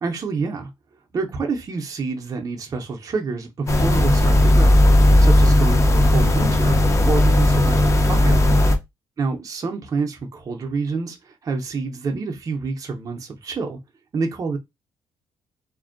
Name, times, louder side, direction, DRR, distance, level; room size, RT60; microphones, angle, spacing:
voice 1, 0.0-0.7 1.1-4.8 5.2-8.4 9.2-13.8 14.1-14.6, right 4 dB, 35° right, 0.5 m, -28 dB
sound 1, 3.7-8.8, left 1 dB, 30° left, 0.4 m, -15 dB
2.5 x 2.1 x 2.4 m
cardioid pair, 95°, 10 cm